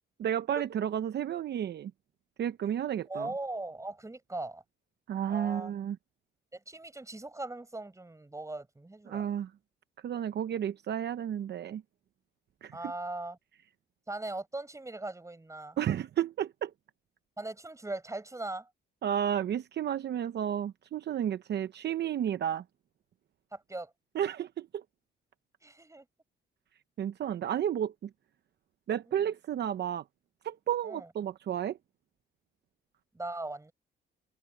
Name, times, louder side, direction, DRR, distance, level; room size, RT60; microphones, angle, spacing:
voice 1, 0.2-1.9 2.4-3.3 5.1-6.0 9.1-9.5 10.0-11.8 12.6-12.8 15.8-16.7 19.0-22.6 24.1-24.8 27.0-28.1 28.9-30.0 30.4-31.8, right 10 dB, 60° right, 0.8 m, -32 dB
voice 2, 3.1-4.6 5.3-5.7 6.5-9.3 12.7-13.4 14.1-15.8 17.4-18.7 23.5-23.9 25.6-26.0 29.1-29.2 30.8-31.1 33.1-33.7, right 2 dB, 15° right, 6.1 m, -39 dB
cardioid pair, 90°, 20 cm